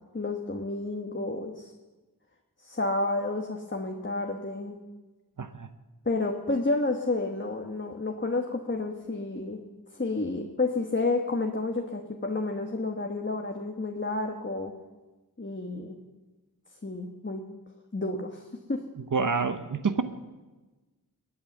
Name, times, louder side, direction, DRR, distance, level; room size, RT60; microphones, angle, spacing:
voice 1, 0.1-1.7 2.6-4.8 6.0-9.6 9.9-14.7 15.4-16.0 16.8-17.4 17.9-18.4 18.7-18.8, left 2 dB, 30° left, 2 dB, 1.3 m, -30 dB
voice 2, 5.4-5.7 19.1-20.0, right 4 dB, 60° right, 10 dB, 0.9 m, -27 dB
21.0 x 8.7 x 7.3 m, 1.2 s
wide cardioid pair, 65°, 36 cm